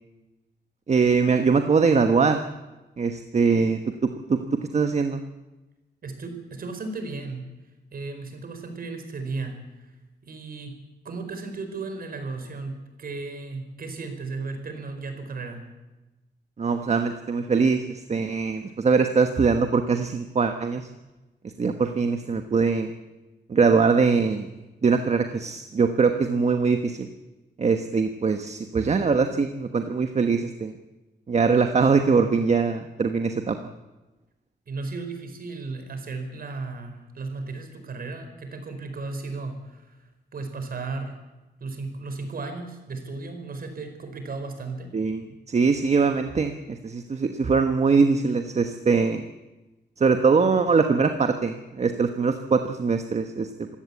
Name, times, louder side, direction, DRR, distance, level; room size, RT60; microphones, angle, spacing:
voice 1, 0.9-2.4 3.0-3.8 4.3-4.4 4.7-5.2 16.6-20.9 21.4-22.9 23.5-24.5 24.8-27.1 27.6-30.7 31.3-33.7 44.9-49.3 50.0-53.8, right 5 dB, 40° right, 7 dB, 1.2 m, -22 dB
voice 2, 6.0-7.5 7.9-9.9 10.2-10.8 11.0-15.6 34.7-41.2 41.6-44.9, right 3 dB, 55° right, 6 dB, 4.7 m, -35 dB
26.0 x 16.5 x 8.5 m, 1.1 s
wide cardioid pair, 160°, 18 cm